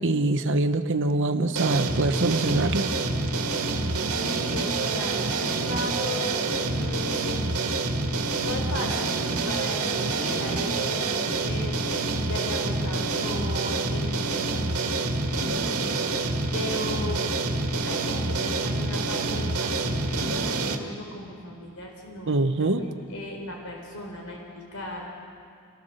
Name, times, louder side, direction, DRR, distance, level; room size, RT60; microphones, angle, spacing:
voice 1, 0.0-2.9 22.3-22.9, right 2 dB, 60° right, 8 dB, 1.0 m, -24 dB
sound 1, 1.6-20.8, right 3 dB, 85° right, 1.9 m, -27 dB
voice 2, 4.2-7.7 8.4-17.4 17.8-25.1, left 1 dB, 80° left, 0 dB, 4.2 m, -37 dB
29.5 x 18.5 x 6.7 m, 2.5 s
head